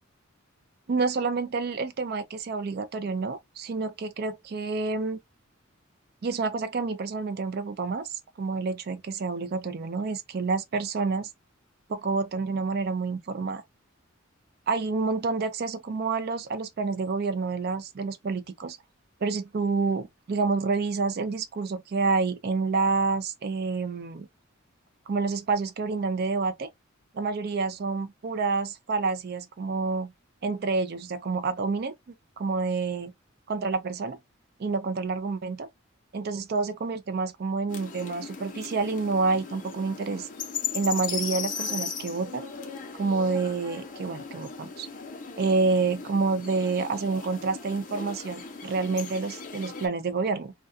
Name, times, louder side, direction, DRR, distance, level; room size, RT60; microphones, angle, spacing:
voice 1, 0.9-5.2 6.2-11.3 11.9-13.6 14.7-18.8 19.2-24.3 25.1-26.7 27.1-30.1 30.4-31.9 32.4-33.1 33.5-34.2 34.6-35.7 36.1-40.3 40.7-42.5 42.9-44.9 45.4-50.5, right 4 dB, 50° right, 0.4 m, -28 dB
sound 1, 37.7-49.9, left 5 dB, 40° left, 0.6 m, -37 dB
2.3 x 2.2 x 2.4 m
head